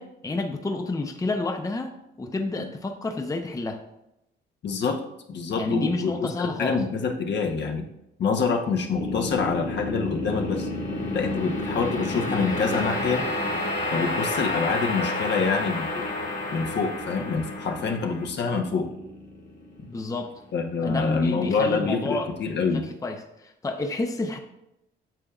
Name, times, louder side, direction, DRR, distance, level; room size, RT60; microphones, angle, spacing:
voice 1, 0.0-1.9 2.2-3.8 5.5-6.8 19.9-20.3 20.8-22.3 22.7-24.4, left 2 dB, 15° left, 5 dB, 0.6 m, -29 dB
voice 2, 4.6-5.0 5.3-7.8 8.2-10.7 11.1-13.2 13.9-16.1 16.5-18.9 20.5-22.9, left 5 dB, 60° left, 3 dB, 1.1 m, -26 dB
sound 1, 8.9-20.1, left 2 dB, 40° left, 1.5 m, -30 dB
8.8 x 6.6 x 2.4 m, 0.86 s
cardioid pair, 90°, 20 cm